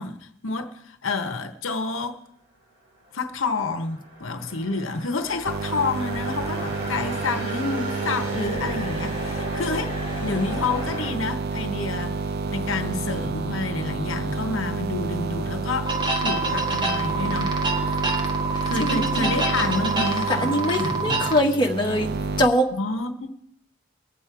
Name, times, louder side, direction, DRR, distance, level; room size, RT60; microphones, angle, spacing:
voice 1, 0.0-2.2 3.1-9.9 10.2-12.2 12.5-17.5 18.6-21.3 22.7-23.3, left 3 dB, 80° left, 1.0 m, -29 dB
sound 1, 3.2-11.1, equal, 75° right, 7.3 m, -35 dB
sound 2, 5.4-22.5, right 3 dB, 55° right, 0.5 m, -30 dB
sound 3, 15.8-21.4, right 3 dB, 25° right, 1.6 m, -26 dB
voice 2, 18.8-19.3 20.3-22.1 22.4-22.7, left 1 dB, 25° left, 1.6 m, -22 dB
22.5 x 7.6 x 4.7 m
head